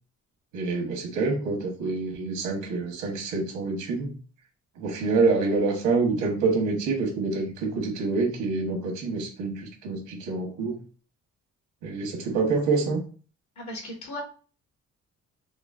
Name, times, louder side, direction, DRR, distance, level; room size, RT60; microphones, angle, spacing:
voice 1, 0.5-4.2 4.8-10.8 11.8-13.0, right 3 dB, 90° right, 2 dB, 1.0 m, -26 dB
voice 2, 13.6-14.2, left 1 dB, 70° left, 0 dB, 1.4 m, -36 dB
3.7 x 2.0 x 2.3 m, 0.39 s
cardioid pair, 90°, 30 cm